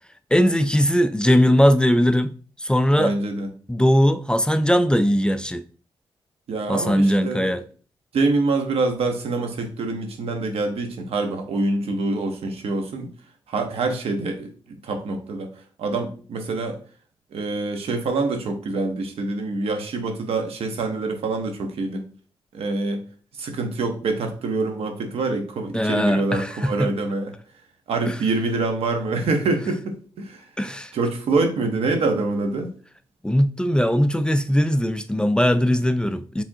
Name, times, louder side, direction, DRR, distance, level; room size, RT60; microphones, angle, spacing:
voice 1, 0.3-2.3 2.6-3.1 3.7-5.6 6.7-7.6 25.7-26.9 28.1-28.2 30.6-30.9 33.2-36.4, equal, 10° left, 0.3 m, -19 dB
voice 2, 3.0-3.5 6.5-7.5 8.1-13.1 13.5-15.5 15.8-16.8 17.3-22.0 22.5-23.0 23.4-27.3 27.9-30.4 30.9-32.7, right 3 dB, 80° right, 0.9 m, -25 dB
4.8 x 3.5 x 2.7 m
cardioid pair, 85°, 10 cm